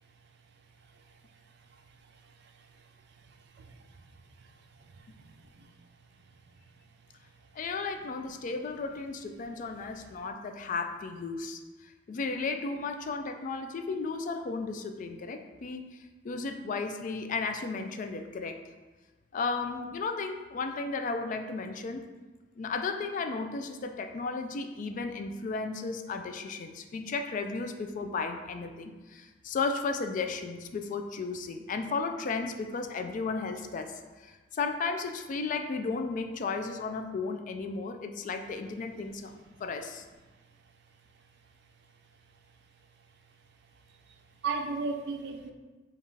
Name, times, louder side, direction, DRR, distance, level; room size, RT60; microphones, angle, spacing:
voice 1, 4.8-5.7 44.4-45.5, right 4 dB, 60° right, 5 dB, 0.4 m, -36 dB
voice 2, 7.5-11.6 12.1-15.8 16.2-18.6 19.3-22.1 22.6-39.3 39.6-40.0, left 4 dB, 45° left, 6 dB, 0.3 m, -34 dB
5.3 x 2.4 x 3.2 m, 1.3 s
head